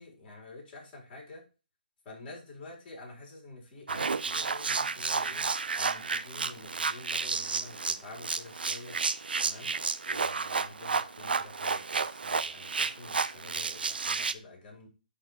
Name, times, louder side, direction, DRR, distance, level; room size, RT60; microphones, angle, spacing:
voice 1, 0.0-1.4 2.0-5.5 5.7-9.0 9.4-9.7 10.1-14.9, left 2 dB, 25° left, -1 dB, 4.2 m, -48 dB
sound 1, 3.9-14.3, right 4 dB, 80° right, 0.6 m, -31 dB
10.5 x 3.6 x 4.7 m, 0.33 s
hypercardioid pair, 150°, 5 cm